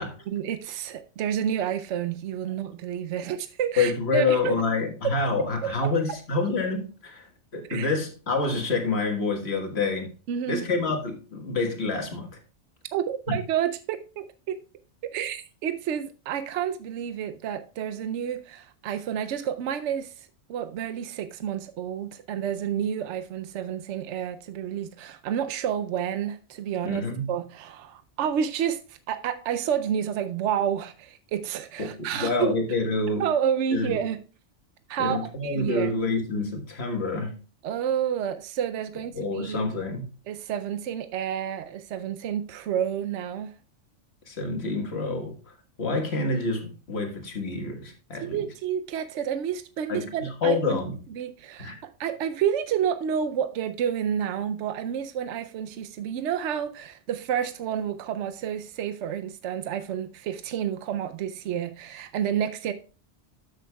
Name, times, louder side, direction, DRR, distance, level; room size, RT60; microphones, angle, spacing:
voice 1, 0.3-4.6 7.7-7.9 10.3-10.6 12.9-14.6 15.0-27.0 27.3-32.5 33.2-34.2 34.9-35.2 35.4-35.9 37.6-39.6 40.3-43.5 48.2-50.8 51.2-51.7 52.0-62.7, right 9 dB, 80° right, 0.9 m, -29 dB
voice 2, 3.8-10.1 10.5-12.4 13.3-13.4 26.8-27.3 31.8-33.3 33.7-34.0 35.0-37.4 39.1-40.1 44.2-48.5 49.9-51.0 51.6-51.8, left 3 dB, 60° left, 1.8 m, -27 dB
13.0 x 6.6 x 2.3 m
omnidirectional pair, 1.2 m